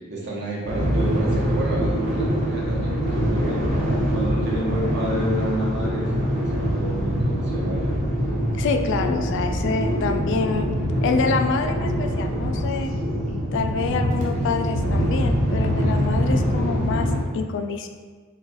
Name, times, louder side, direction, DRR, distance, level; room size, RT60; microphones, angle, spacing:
voice 1, 0.1-3.6 4.1-7.8, right 1 dB, 55° right, -5 dB, 0.9 m, -30 dB
sound 1, 0.6-17.2, equal, 35° right, 0.8 m, -24 dB
voice 2, 8.5-10.7 11.0-12.9 13.5-17.9, left 4 dB, 60° left, 6 dB, 0.3 m, -26 dB
3.0 x 2.2 x 4.2 m, 1.5 s
head